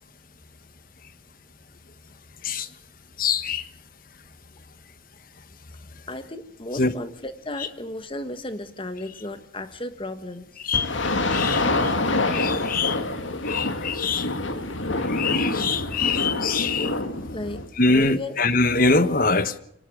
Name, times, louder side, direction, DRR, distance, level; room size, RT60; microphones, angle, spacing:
voice 1, 3.2-3.6 6.8-6.9 10.6-10.9 11.3-11.9 12.3-13.0 13.4-14.3 15.1-16.9 17.8-19.6, left 3 dB, 50° left, 13 dB, 1.4 m, -23 dB
voice 2, 6.1-10.5 16.8-17.0 17.3-18.4, left 1 dB, 30° left, 11 dB, 1.5 m, -34 dB
sound 1, 10.7-17.7, left 2 dB, 90° left, 2.3 m, -26 dB
25.0 x 19.0 x 6.5 m, 0.68 s
head